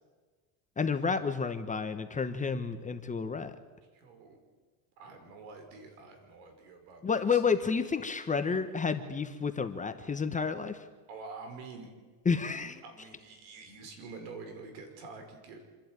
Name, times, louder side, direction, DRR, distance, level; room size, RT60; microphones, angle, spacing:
voice 1, 0.8-3.6 7.0-10.9 12.2-12.8, left 5 dB, 15° left, 9 dB, 1.0 m, -30 dB
voice 2, 3.9-4.4 5.0-7.4 11.1-11.9 12.8-15.6, right 4 dB, 75° right, 5 dB, 5.5 m, -47 dB
27.0 x 11.5 x 9.1 m, 1.4 s
supercardioid pair, 130°, 44 cm